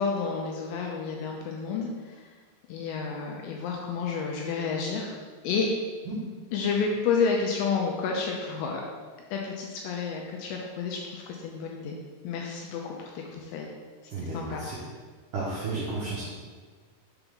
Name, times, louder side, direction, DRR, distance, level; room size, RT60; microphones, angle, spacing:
voice 1, 0.0-2.3 2.7-5.2 5.4-5.7 6.5-8.8 9.3-12.0 12.2-13.7 14.3-14.7, left 5 dB, 85° left, 0 dB, 2.6 m, -30 dB
voice 2, 14.1-14.8 15.3-16.2, right 3 dB, 85° right, -8 dB, 1.8 m, -32 dB
6.9 x 5.5 x 3.5 m, 1.5 s
omnidirectional pair, 5.5 m